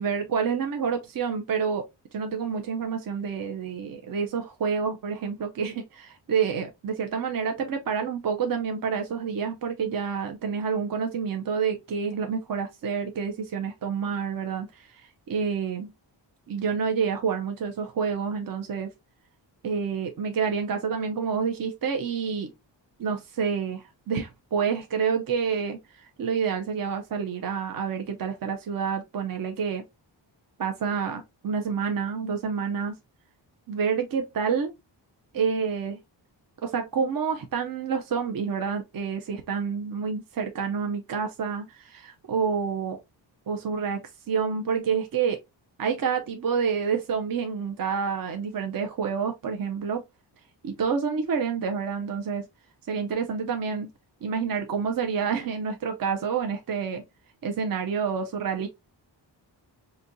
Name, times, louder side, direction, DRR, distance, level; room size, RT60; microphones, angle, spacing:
voice 1, 0.0-15.9 16.5-18.9 19.6-22.5 23.0-29.8 30.6-33.0 33.7-34.7 35.3-36.0 36.6-43.0 43.5-45.4 45.8-50.0 50.6-52.5 52.9-53.9 54.2-57.0 57.4-58.7, right 6 dB, 50° right, 0.6 m, -28 dB
4.1 x 2.7 x 2.5 m
wide cardioid pair, 135°, 44 cm